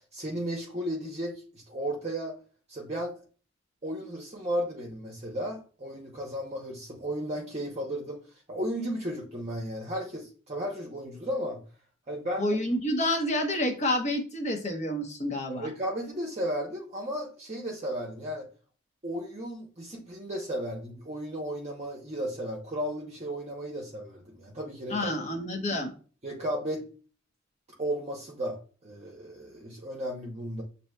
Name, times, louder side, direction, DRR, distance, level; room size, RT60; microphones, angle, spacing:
voice 1, 0.0-2.4 2.7-3.2 3.8-8.2 8.5-11.6 12.1-12.5 15.5-18.5 19.0-25.3 26.2-26.9 27.8-30.6, equal, 35° right, -1 dB, 0.8 m, -34 dB
voice 2, 12.4-15.7 24.9-25.9, left 1 dB, 35° left, 3 dB, 0.9 m, -29 dB
7.6 x 2.7 x 2.2 m, 0.39 s
head